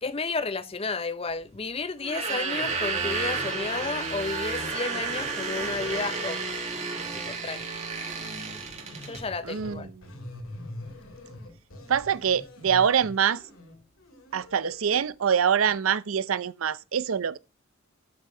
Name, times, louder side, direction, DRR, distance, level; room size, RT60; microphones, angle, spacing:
voice 1, 0.0-6.4 7.1-7.7 9.0-9.9, left 3 dB, 30° left, 0.7 m, -32 dB
sound 1, 2.0-9.2, right 4 dB, 35° right, 2.6 m, -31 dB
sound 2, 6.9-7.7 8.1-15.1 15.6-15.8, left 1 dB, 90° left, 2.6 m, -44 dB
voice 2, 9.4-9.9 11.9-13.4 14.3-17.4, right 8 dB, 85° right, 0.5 m, -25 dB
12.0 x 5.4 x 4.4 m
head